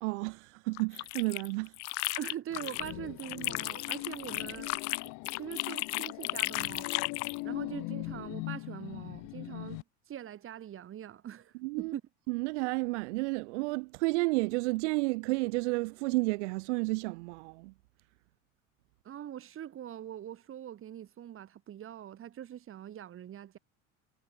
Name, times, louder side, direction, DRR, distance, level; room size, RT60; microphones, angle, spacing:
voice 1, 0.0-1.7 11.6-11.9 12.3-17.7, right 26 dB, 85° right, 1.8 m, -31 dB
sound 1, 0.7-2.9 3.2-7.4, left 28 dB, 85° left, 0.8 m, -35 dB
voice 2, 2.2-4.7 5.3-6.9 7.4-12.0 19.0-23.6, right 10 dB, 40° right, 6.1 m, -43 dB
sound 2, 2.5-9.8, left 26 dB, 65° left, 5.1 m, -41 dB
supercardioid pair, 130°, 34 cm